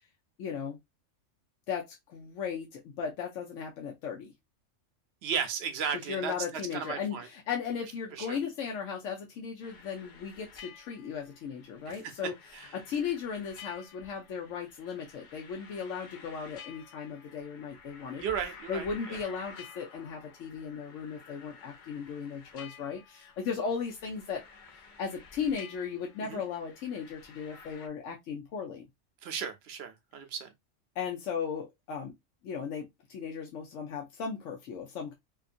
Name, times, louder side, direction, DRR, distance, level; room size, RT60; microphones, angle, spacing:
voice 1, 0.4-0.8 1.7-4.3 6.1-12.3 12.7-18.2 18.7-24.4 25.0-28.9 31.0-32.1 32.4-35.1, left 6 dB, 85° left, 1.0 m, -36 dB
voice 2, 5.2-7.3 8.1-8.4 11.9-12.0 12.5-12.7 18.2-19.2 26.2-26.4 29.2-30.5, right 7 dB, 65° right, 0.8 m, -35 dB
sound 1, 9.6-27.9, left 5 dB, 55° left, 0.5 m, -52 dB
2.8 x 2.5 x 2.4 m
omnidirectional pair, 1.3 m